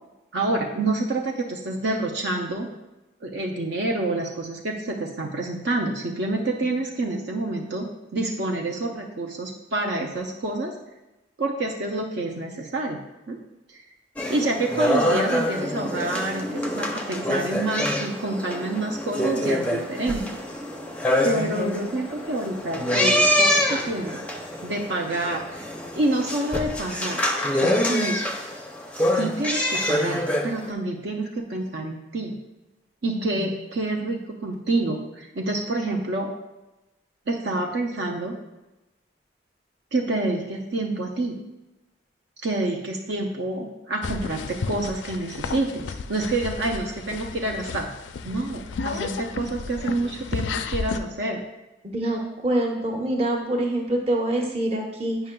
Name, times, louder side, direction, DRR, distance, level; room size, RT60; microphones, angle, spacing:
voice 1, 0.3-2.7 3.2-10.7 11.4-13.0 13.3-13.4 13.7-13.8 14.3-20.3 21.2-24.2 24.6-25.7 25.9-27.2 27.6-28.2 29.0-32.4 33.0-36.3 37.3-38.3 39.9-41.4 42.4-47.9 48.2-51.4, right 2 dB, 65° right, 1 dB, 0.6 m, -28 dB
sound 1, 14.2-30.7, left 1 dB, 5° left, 0.5 m, -25 dB
voice 2, 33.0-33.5 51.8-55.2, right 1 dB, 30° right, 0 dB, 0.9 m, -25 dB
sound 2, 44.0-51.0, left 4 dB, 75° left, 0.4 m, -33 dB
9.0 x 5.7 x 2.2 m, 1.0 s
head